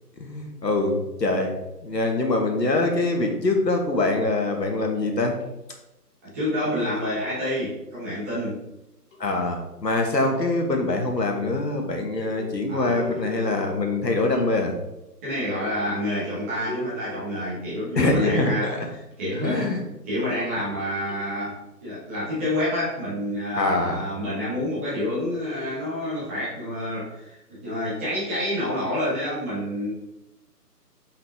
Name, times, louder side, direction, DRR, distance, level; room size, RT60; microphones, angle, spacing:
voice 1, 0.2-1.5 1.8-5.3 9.2-14.7 17.9-18.8 19.4-19.8 23.5-24.0, left 2 dB, 85° left, 2 dB, 1.7 m, -24 dB
sound 1, 5.4-5.5 7.2-7.8 9.1-9.7 10.2-11.8 12.1-14.0 14.3-14.9 15.6-18.6 19.1-19.7 20.4-21.5, equal, 50° left, 1.8 m, -41 dB
voice 2, 6.2-8.6 12.7-13.1 14.0-14.2 15.2-19.8 20.1-29.9, left 1 dB, 10° right, -10 dB, 1.1 m, -28 dB
5.7 x 5.1 x 3.6 m, 0.91 s
figure-of-eight pair, 160°, 48 cm